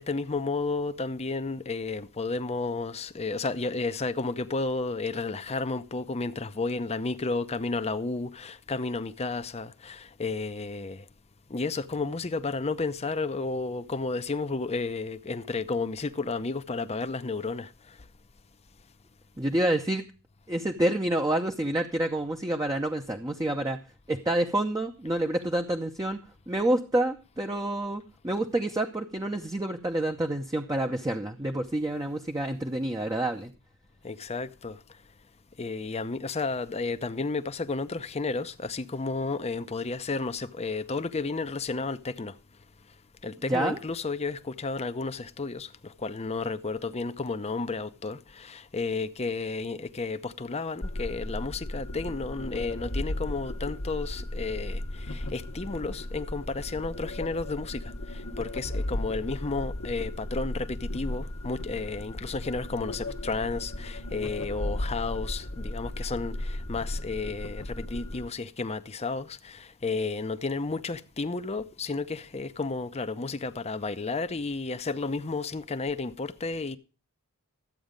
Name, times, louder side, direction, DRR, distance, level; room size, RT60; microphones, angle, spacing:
voice 1, 0.0-11.0 11.5-18.0 34.0-34.8 35.6-42.4 43.2-76.8, left 3 dB, 30° left, 0.7 m, -32 dB
voice 2, 19.4-20.0 20.5-23.8 24.1-33.5 43.4-43.8, right 1 dB, 15° right, 0.8 m, -28 dB
sound 1, 50.8-68.3, left 1 dB, 65° left, 1.2 m, -35 dB
13.0 x 8.5 x 5.2 m
head